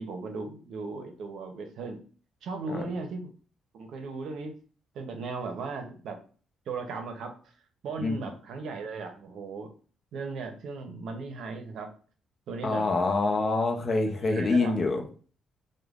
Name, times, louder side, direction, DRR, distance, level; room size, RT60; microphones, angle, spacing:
voice 1, 0.0-2.0 2.4-3.3 3.7-4.5 4.9-6.2 6.7-7.4 7.8-9.7 10.1-11.9 12.5-12.9 14.2-14.7, right 4 dB, 70° right, 0.6 m, -37 dB
voice 2, 12.6-15.0, left 3 dB, 45° left, 0.5 m, -26 dB
3.2 x 2.1 x 2.3 m
cardioid pair, 90°, 0 cm